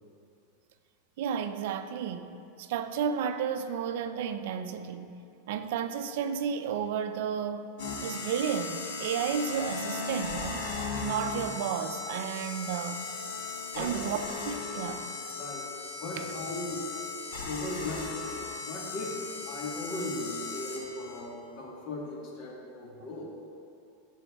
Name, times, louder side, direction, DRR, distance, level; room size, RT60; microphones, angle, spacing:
voice 1, 1.2-2.3 2.6-5.1 5.5-7.7 8.0-10.6 11.0-13.0 13.8-14.2 14.5-15.0 16.2-16.3, right 7 dB, 65° right, 9 dB, 0.4 m, -32 dB
sound 1, 7.8-21.2, left 4 dB, 80° left, 1.3 m, -37 dB
voice 2, 13.7-14.0 15.3-15.7 16.0-16.9 17.4-23.3, left 1 dB, 40° left, -2 dB, 1.3 m, -38 dB
13.5 x 6.1 x 2.3 m, 2.6 s
supercardioid pair, 155°, 0 cm